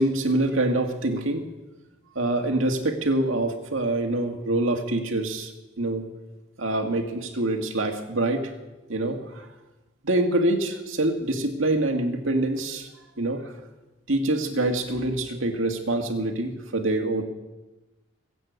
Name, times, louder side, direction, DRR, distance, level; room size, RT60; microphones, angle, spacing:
voice 1, 0.0-1.4 2.2-5.5 5.8-6.0 6.6-8.5 8.9-9.5 10.0-12.9 13.2-13.4 14.1-17.2, right 2 dB, 85° right, 4 dB, 2.1 m, -25 dB
21.0 x 8.4 x 8.2 m, 1.1 s
head